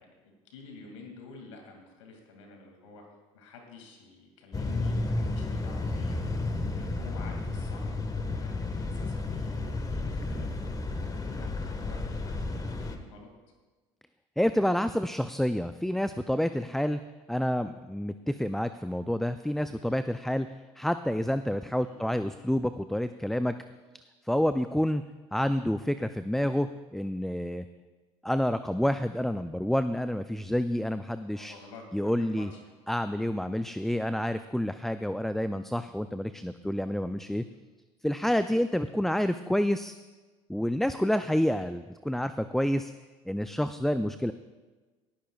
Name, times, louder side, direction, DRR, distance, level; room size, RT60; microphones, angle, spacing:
voice 1, 0.0-3.0 3.3-6.2 6.6-7.9 8.3-13.3 21.8-22.0 31.3-32.6 33.3-33.4, left 4 dB, 85° left, 2 dB, 2.4 m, -50 dB
sound 1, 4.5-13.0, left 2 dB, 25° left, 1.5 m, -32 dB
voice 2, 14.4-17.0 17.3-20.5 20.8-23.6 24.3-25.0 25.3-27.7 28.2-31.5 31.9-32.5 32.9-37.4 38.0-39.9 40.5-42.9 43.3-44.3, equal, ahead, 11 dB, 0.4 m, -28 dB
18.5 x 13.5 x 2.4 m, 1.3 s
hypercardioid pair, 70°, 16 cm